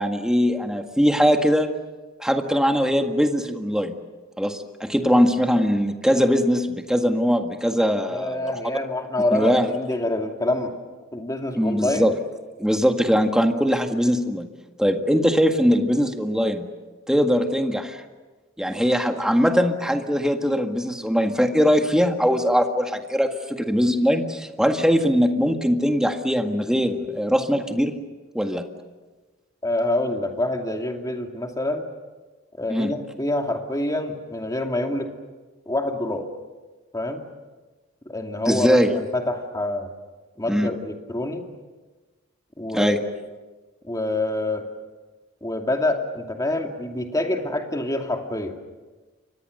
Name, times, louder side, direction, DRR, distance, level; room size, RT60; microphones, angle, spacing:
voice 1, 0.0-1.7 2.2-3.9 4.4-8.5 9.3-9.7 11.6-12.1 12.6-14.5 14.8-16.7 17.1-18.0 18.6-27.9 28.3-28.7 32.7-32.9 38.4-38.9 40.5-40.7 42.7-43.0, equal, 5° right, 5 dB, 1.8 m, -21 dB
voice 2, 8.1-10.7 11.1-12.0 29.6-31.9 32.6-35.1 35.7-36.2 36.9-37.2 38.1-39.9 40.4-41.4 42.6-43.1 43.8-44.6 45.4-48.5, left 1 dB, 20° left, 3 dB, 2.6 m, -26 dB
29.5 x 24.0 x 6.7 m, 1.3 s
head